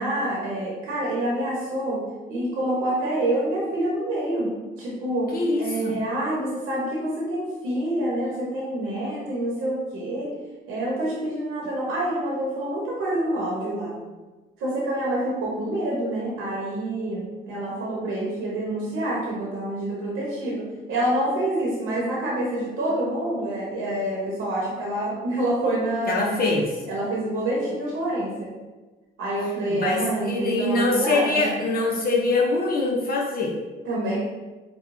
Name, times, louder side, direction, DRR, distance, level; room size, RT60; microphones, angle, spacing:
voice 1, 0.0-2.0 2.3-4.5 4.8-5.3 5.6-10.3 10.7-13.9 14.6-26.5 26.9-28.5 29.2-31.5 33.9-34.2, right 1 dB, 90° right, -5 dB, 0.9 m, -27 dB
voice 2, 5.3-6.0 26.1-26.7 29.8-33.6, left 2 dB, 50° left, -2 dB, 0.6 m, -23 dB
4.6 x 2.2 x 2.5 m, 1.2 s
cardioid pair, 90°, 20 cm